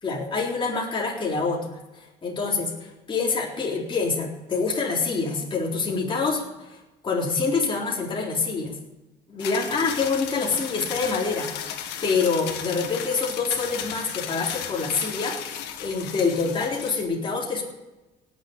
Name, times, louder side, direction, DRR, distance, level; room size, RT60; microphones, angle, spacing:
voice 1, 0.0-6.8 7.0-8.7 9.3-11.5 12.0-15.4 15.8-17.6, left 4 dB, 30° left, -3 dB, 3.9 m, -26 dB
sound 1, 9.4-17.0, left 9 dB, 85° left, 1.9 m, -35 dB
18.0 x 7.7 x 8.7 m, 1.0 s
cardioid pair, 110°, 17 cm